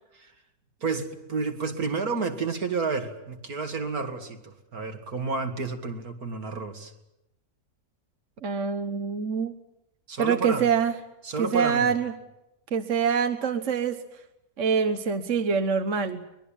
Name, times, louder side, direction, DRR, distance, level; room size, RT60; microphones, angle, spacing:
voice 1, 0.8-6.9 10.1-10.7 11.2-11.9, right 4 dB, 75° right, 4 dB, 2.9 m, -30 dB
voice 2, 8.4-9.5 10.2-10.9 11.4-12.1 12.7-14.0 14.6-16.2, right 6 dB, 55° right, 7 dB, 1.5 m, -25 dB
23.5 x 21.5 x 8.9 m, 0.89 s
omnidirectional pair, 1.6 m